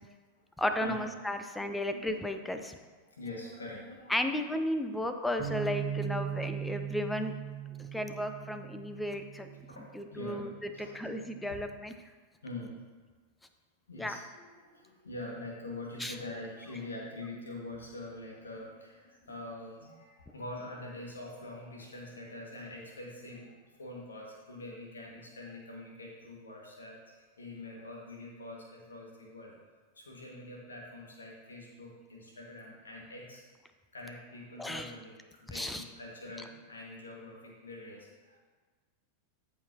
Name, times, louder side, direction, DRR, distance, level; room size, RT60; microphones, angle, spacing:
voice 1, 0.6-2.7 4.1-7.3 7.9-9.5 9.9-10.5 10.8-11.9 14.0-14.2 16.0-16.1 34.6-34.9 35.5-35.8, left 1 dB, 5° left, 7 dB, 0.6 m, -34 dB
voice 2, 1.4-2.0 2.6-2.7 3.1-4.2 6.2-6.7 7.6-8.2 9.4-10.5 10.7-11.1 12.4-12.8 13.9-29.5 29.9-33.5 33.9-38.4, left 2 dB, 70° left, -2 dB, 1.9 m, -45 dB
Bass guitar, 5.4-9.8 10.5-11.6, right 9 dB, 25° right, 1.9 m, -39 dB
13.5 x 5.4 x 2.9 m, 1.4 s
figure-of-eight pair, 90°, 0 cm